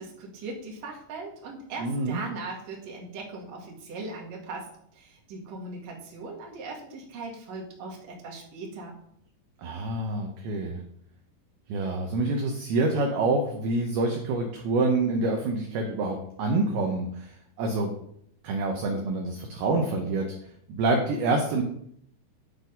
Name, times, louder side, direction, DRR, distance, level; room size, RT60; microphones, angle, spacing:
voice 1, 0.0-4.7 4.9-9.0, right 3 dB, 45° right, -2 dB, 2.5 m, -39 dB
voice 2, 1.8-2.2 9.6-10.8 11.7-17.3 17.6-17.9 18.4-20.3 20.7-21.6, right 2 dB, 70° right, 2 dB, 2.5 m, -27 dB
12.0 x 4.1 x 5.2 m, 0.69 s
omnidirectional pair, 5.3 m